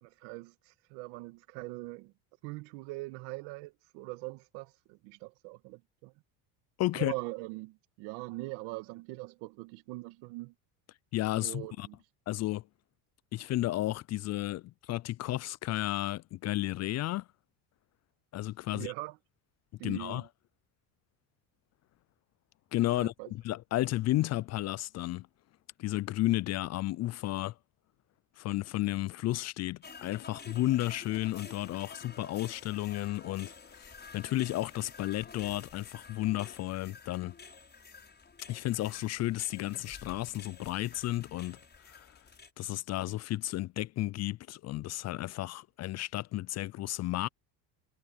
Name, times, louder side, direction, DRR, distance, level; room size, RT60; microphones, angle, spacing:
voice 1, 0.0-2.1 2.4-6.1 6.9-10.5 11.4-12.0 18.7-19.2 19.8-20.3 22.9-23.3, right 22 dB, 75° right, 2.2 m, -42 dB
voice 2, 6.8-7.1 11.1-11.9 12.3-12.6 13.3-17.3 18.3-18.9 19.8-20.3 22.7-25.3 25.8-27.5 28.4-37.3 38.5-42.2 42.6-47.3, left 16 dB, 40° left, 0.4 m, -33 dB
sound 1, 29.8-42.5, left 5 dB, 25° left, 7.0 m, -50 dB
supercardioid pair, 100°, 42 cm